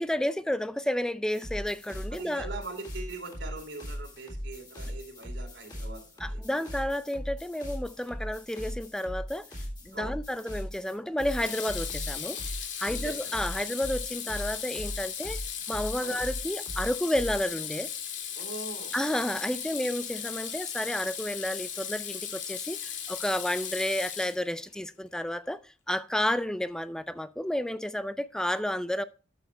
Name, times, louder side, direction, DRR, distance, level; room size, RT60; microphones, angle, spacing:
voice 1, 0.0-2.5 6.2-15.4 15.7-17.9 18.9-29.0, left 1 dB, 5° left, 0.3 m, -31 dB
sound 1, 1.3-17.5, equal, 25° left, 3.3 m, -39 dB
voice 2, 2.1-6.4 9.9-10.2 12.9-13.2 16.0-16.2 18.3-18.9, right 3 dB, 85° right, 3.0 m, -41 dB
Water tap faucet / Sink (filling or washing), 9.6-10.0 11.3-24.7, left 8 dB, 85° left, 2.2 m, -37 dB
12.5 x 6.9 x 3.4 m
head